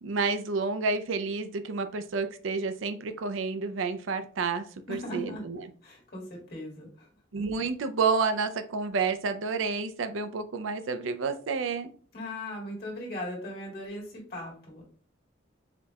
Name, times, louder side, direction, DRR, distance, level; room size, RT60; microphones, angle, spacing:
voice 1, 0.0-5.6 7.3-11.9, right 4 dB, 80° right, 9 dB, 0.4 m, -30 dB
voice 2, 4.9-5.4 5.8-7.1 12.1-14.8, left 1 dB, 50° left, -2 dB, 1.6 m, -38 dB
5.0 x 2.3 x 2.8 m, 0.43 s
head